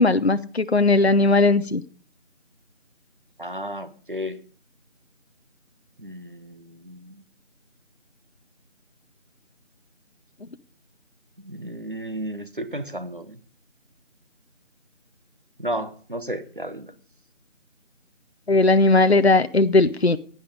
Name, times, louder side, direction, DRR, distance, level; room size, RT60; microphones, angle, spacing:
voice 1, 0.0-1.8 18.5-20.2, left 3 dB, 55° left, 0.7 m, -18 dB
voice 2, 3.4-4.4 6.0-7.2 11.4-13.4 15.6-16.9, equal, 40° right, 1.1 m, -33 dB
16.0 x 9.6 x 5.2 m
figure-of-eight pair, 175°, 38 cm